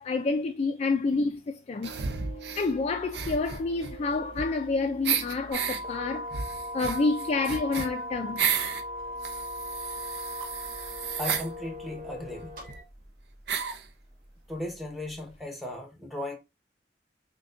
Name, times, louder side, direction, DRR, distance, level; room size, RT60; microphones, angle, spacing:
voice 1, 0.0-1.9 2.6-6.3 6.7-8.4, left 3 dB, 35° left, 0.3 m, -28 dB
sound 1, 1.8-12.8, left 1 dB, 50° right, 1.7 m, -44 dB
sound 2, 1.8-2.7 3.1-4.7 5.0-5.8 6.3-8.8 9.2-11.5 12.4-12.5 12.7-12.8 13.5-13.9, right 7 dB, 65° right, 0.5 m, -32 dB
sound 3, 5.5-11.8, equal, 30° right, 1.4 m, -38 dB
voice 2, 11.2-12.5 14.5-16.4, left 1 dB, ahead, 0.8 m, -36 dB
6.0 x 2.2 x 2.5 m
head